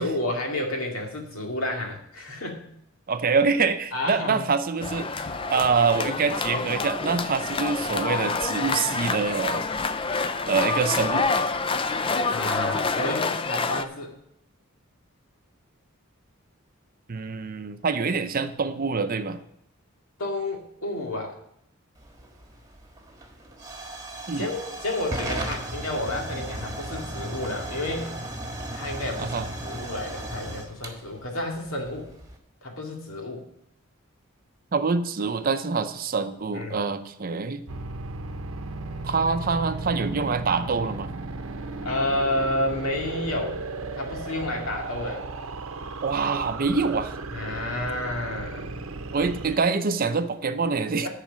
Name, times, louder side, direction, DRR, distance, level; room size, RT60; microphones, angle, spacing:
voice 1, 0.0-2.6 3.9-4.4 12.3-14.1 20.2-21.4 24.3-28.1 28.7-32.1 32.6-33.4 36.5-36.8 41.8-43.6 43.9-45.2 47.3-48.8, left 1 dB, 75° left, 1 dB, 2.2 m, -30 dB
voice 2, 3.1-9.7 10.5-11.3 17.1-19.4 24.3-24.5 29.2-29.5 34.7-37.6 39.0-41.1 46.0-47.2 49.1-51.1, right 4 dB, 45° right, 10 dB, 0.6 m, -25 dB
sound 1, 4.8-13.8, left 4 dB, 25° left, 0.4 m, -27 dB
Hiss / Fire / Tick, 22.0-32.4, right 1 dB, 15° right, 1.5 m, -36 dB
sound 2, 37.7-49.6, right 3 dB, 75° right, 0.8 m, -35 dB
10.5 x 4.9 x 7.4 m, 0.75 s
head